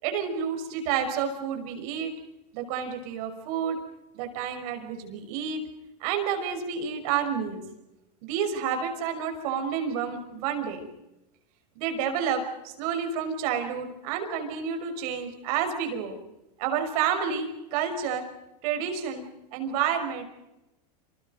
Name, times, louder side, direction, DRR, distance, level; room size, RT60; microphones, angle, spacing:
voice 1, 0.0-2.1 2.5-3.8 4.1-5.6 6.0-7.6 8.2-10.9 11.7-16.2 16.6-18.3 18.6-19.2 19.5-20.2, right 7 dB, 65° right, 6 dB, 5.9 m, -29 dB
29.0 x 27.5 x 5.3 m, 0.93 s
hypercardioid pair, 115°, 20 cm